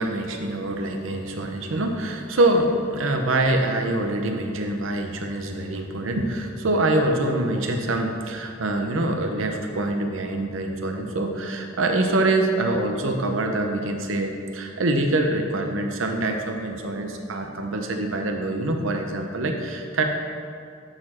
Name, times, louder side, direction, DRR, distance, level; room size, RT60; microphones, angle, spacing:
voice 1, 0.0-20.0, right 2 dB, 75° right, 4 dB, 0.7 m, -25 dB
8.8 x 4.2 x 4.3 m, 2.3 s
head